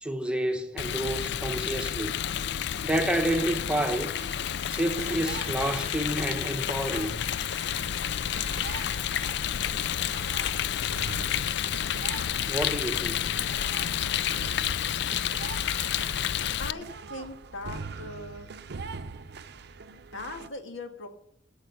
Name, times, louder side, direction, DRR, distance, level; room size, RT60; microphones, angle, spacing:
voice 1, 0.0-2.2 2.8-4.2 4.7-7.2 12.5-13.3, right 1 dB, 5° right, 0.9 m, -29 dB
Rain, 0.8-16.7, left 10 dB, 65° left, 0.4 m, -30 dB
sound 1, 4.0-20.5, right 5 dB, 60° right, 0.6 m, -44 dB
voice 2, 16.6-18.5 19.9-21.1, left 2 dB, 85° left, 1.9 m, -40 dB
13.5 x 7.2 x 6.9 m
head